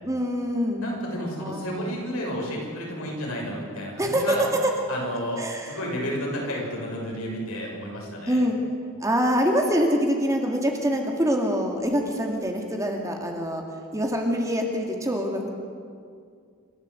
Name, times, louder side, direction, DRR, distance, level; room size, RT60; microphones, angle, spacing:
voice 1, 0.0-0.8 1.4-1.9 4.0-4.4 5.4-5.7 8.3-8.5 9.0-13.6 13.9-15.5, equal, 15° right, 2 dB, 2.1 m, -25 dB
voice 2, 0.8-4.4 4.9-8.4, equal, 75° left, -2 dB, 6.7 m, -31 dB
27.5 x 13.5 x 7.7 m, 2.2 s
head